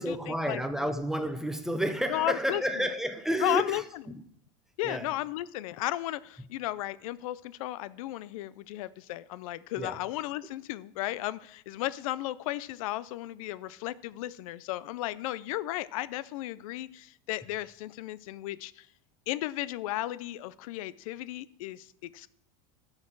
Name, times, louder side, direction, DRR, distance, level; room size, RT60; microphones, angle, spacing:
voice 1, 0.0-3.8 4.8-5.1 9.8-10.0, equal, 5° right, 0.3 m, -30 dB
voice 2, 2.1-2.9 3.4-3.8 4.8-18.9 19.3-22.3, left 15 dB, 85° left, 0.4 m, -34 dB
9.4 x 6.6 x 4.6 m
supercardioid pair, 170°, 18 cm